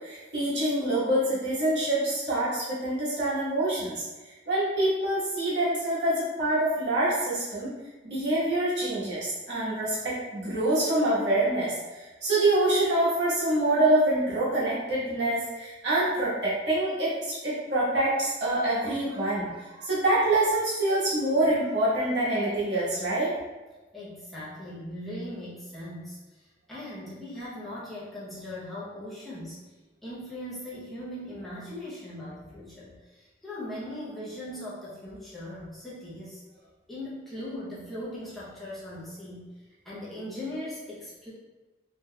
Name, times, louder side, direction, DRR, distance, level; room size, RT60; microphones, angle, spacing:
voice 1, 0.0-4.0 4.5-7.7 8.0-23.3, right 1 dB, 70° right, -10 dB, 1.3 m, -26 dB
voice 2, 23.9-29.6 30.0-36.4 36.9-39.5 39.8-41.3, left 1 dB, ahead, -10 dB, 0.7 m, -39 dB
3.7 x 2.9 x 2.3 m, 1.2 s
head